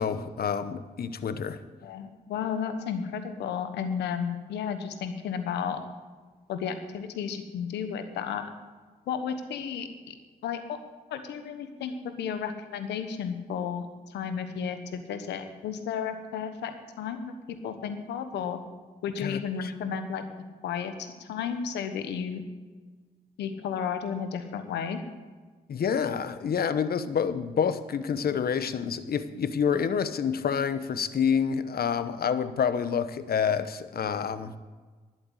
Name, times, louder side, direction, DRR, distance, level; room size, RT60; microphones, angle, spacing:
voice 1, 0.0-1.6 19.2-19.7 25.7-34.6, left 7 dB, 60° left, 13 dB, 0.9 m, -28 dB
voice 2, 1.8-5.8 6.5-8.5 9.1-10.1 10.4-10.8 11.1-17.3 17.6-18.6 19.0-20.2 20.6-22.4 23.4-25.0, left 7 dB, 90° left, 9 dB, 1.2 m, -33 dB
12.0 x 7.9 x 8.0 m, 1.4 s
supercardioid pair, 50°, 17 cm